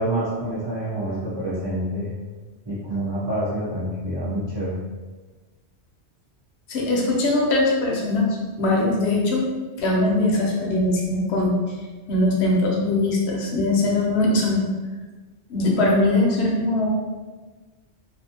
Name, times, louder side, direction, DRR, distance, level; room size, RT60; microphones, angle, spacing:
voice 1, 0.0-2.1 2.7-4.8, right 1 dB, 30° right, -8 dB, 0.5 m, -27 dB
voice 2, 6.7-9.4 9.8-11.6 12.1-14.6 15.5-16.9, left 2 dB, 75° left, -1 dB, 0.9 m, -21 dB
2.5 x 2.4 x 2.7 m, 1.3 s
omnidirectional pair, 1.1 m